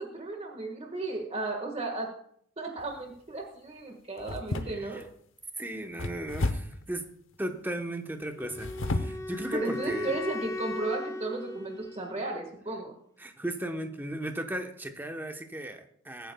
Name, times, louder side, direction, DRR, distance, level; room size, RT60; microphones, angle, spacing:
voice 1, 0.0-2.1 2.6-5.0 9.5-12.9, right 2 dB, 35° right, 2 dB, 1.6 m, -34 dB
sound 1, 2.8-3.2 4.2-5.1 6.0-6.8 8.4-9.2 9.8-9.9 10.4-10.6, left 2 dB, 85° left, 0.9 m, -32 dB
voice 2, 4.6-5.0 5.6-7.0 7.4-10.2 13.2-16.3, right 1 dB, 10° right, 5 dB, 1.0 m, -36 dB
Wind instrument woodwind instrument, 8.4-12.5, left 3 dB, 15° left, 0.5 m, -38 dB
22.0 x 9.2 x 2.3 m, 0.64 s
head